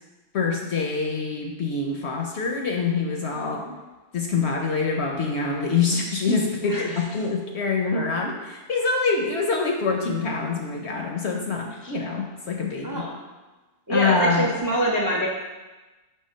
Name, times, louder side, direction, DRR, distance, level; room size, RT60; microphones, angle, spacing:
voice 1, 0.3-3.6 4.1-13.1 13.9-14.5, left 4 dB, 60° left, 1 dB, 0.7 m, -25 dB
voice 2, 3.3-3.8 6.6-7.0 11.8-11.9 12.8-13.2 13.9-15.3, equal, 30° right, -2 dB, 0.3 m, -26 dB
5.6 x 3.3 x 5.4 m, 1.2 s
omnidirectional pair, 1.6 m